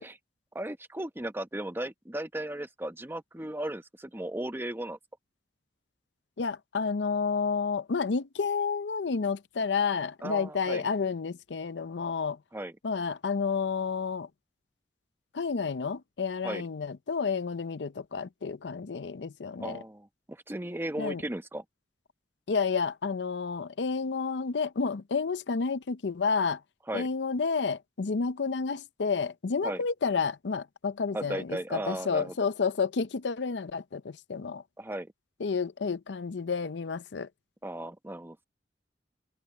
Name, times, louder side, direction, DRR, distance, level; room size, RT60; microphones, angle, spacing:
voice 1, 0.5-5.0 10.2-10.8 12.5-12.8 16.4-16.7 19.6-21.6 26.9-27.1 29.6-29.8 31.1-32.3 34.8-35.1 37.6-38.5, right 1 dB, 15° right, 1.0 m, -36 dB
voice 2, 6.4-12.4 12.8-14.3 15.3-19.8 21.0-21.2 22.5-26.6 26.9-34.6 35.4-37.3, left 5 dB, 75° left, 0.6 m, -30 dB
head